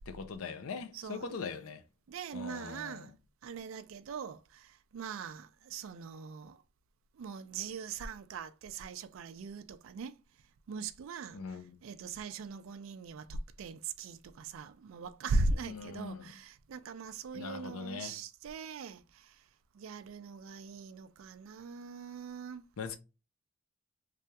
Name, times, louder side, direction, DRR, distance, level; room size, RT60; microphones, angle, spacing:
voice 1, 0.1-1.8 2.3-3.1 11.3-11.8 15.6-16.3 17.3-18.2 22.8-23.0, left 5 dB, 90° left, 0.5 m, -41 dB
voice 2, 0.9-1.4 2.1-3.1 3.4-6.6 7.2-10.1 10.7-11.4 11.8-19.3 19.7-22.6, right 3 dB, 75° right, 0.3 m, -40 dB
3.3 x 2.3 x 2.7 m
head